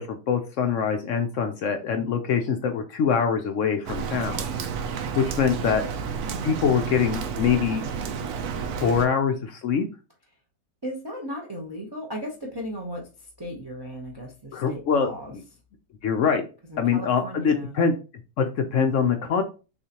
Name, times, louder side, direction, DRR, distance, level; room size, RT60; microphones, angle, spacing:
voice 1, 0.0-4.3 5.2-5.8 6.4-7.8 8.8-9.9 14.5-15.4 16.0-16.4 16.8-17.9 18.4-19.4, left 6 dB, 65° left, 6 dB, 0.8 m, -24 dB
Rain, 3.9-9.1, right 6 dB, 70° right, 1.0 m, -31 dB
voice 2, 6.2-6.7 10.8-13.1 13.4-15.3 16.7-17.7, equal, 25° right, 0 dB, 0.6 m, -36 dB
6.6 x 2.5 x 2.8 m, 0.33 s
omnidirectional pair, 1.8 m